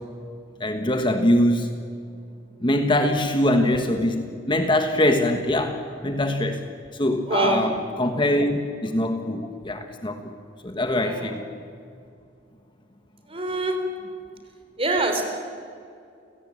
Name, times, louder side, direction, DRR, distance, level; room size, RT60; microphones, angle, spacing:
voice 1, 0.6-1.8 2.6-6.6 6.9-10.3 10.6-11.4, left 1 dB, 25° left, 6 dB, 1.4 m, -23 dB
voice 2, 7.3-7.7 11.0-11.4 13.3-13.8 14.8-15.2, right 2 dB, 30° right, 5 dB, 3.6 m, -24 dB
29.5 x 17.0 x 8.9 m, 2.4 s
head